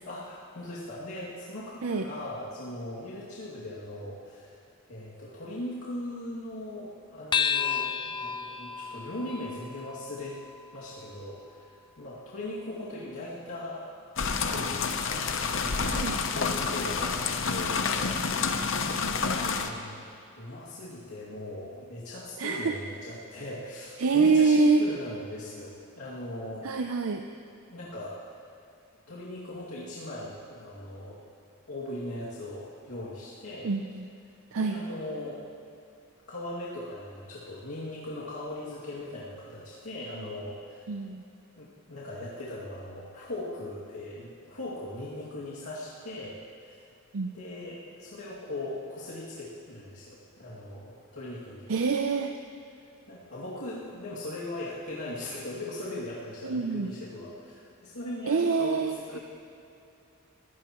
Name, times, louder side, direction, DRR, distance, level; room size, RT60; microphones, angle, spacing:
voice 1, 0.0-4.6 4.9-10.4 10.7-11.7 12.0-13.9 14.3-14.9 15.4-16.0 16.3-18.2 18.8-26.7 27.7-28.2 29.1-31.2 31.7-33.7 34.6-35.4 36.3-40.9 41.6-46.8 47.3-51.6 53.1-59.2, left 1 dB, 85° left, -8 dB, 2.4 m, -39 dB
sound 1, 7.3-12.1, left 7 dB, 20° left, 0.3 m, -33 dB
sound 2, 14.2-19.7, left 5 dB, 60° left, 0.8 m, -29 dB
voice 2, 15.8-16.2 22.4-22.8 24.0-24.8 26.6-27.2 33.6-34.1 34.5-34.8 40.9-41.2 47.1-47.4 51.7-52.3 56.4-56.9 58.3-59.2, right 4 dB, 75° right, 5 dB, 0.6 m, -25 dB
20.5 x 16.0 x 3.1 m, 2.6 s
head